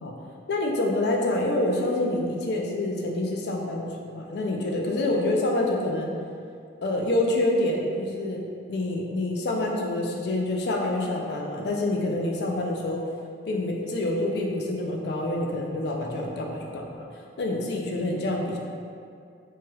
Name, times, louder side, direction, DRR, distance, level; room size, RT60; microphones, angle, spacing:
voice 1, 0.5-6.1 6.8-8.4 8.7-13.0 13.5-17.1 17.4-18.6, left 1 dB, 60° left, 0 dB, 0.4 m, -27 dB
3.0 x 2.3 x 2.9 m, 2.3 s
head